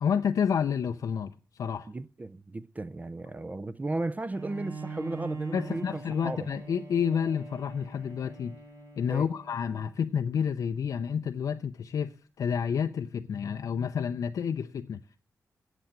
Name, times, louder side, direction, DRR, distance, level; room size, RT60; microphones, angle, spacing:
voice 1, 0.0-1.3 1.6-1.9 5.5-8.6 9.0-15.0, left 7 dB, 75° left, 0.5 m, -29 dB
voice 2, 1.9-6.5 9.1-9.3, right 2 dB, 25° right, 0.5 m, -35 dB
Bowed string instrument, 4.3-10.0, right 4 dB, 55° right, 1.7 m, -43 dB
8.1 x 7.7 x 8.6 m
cardioid pair, 65°, 6 cm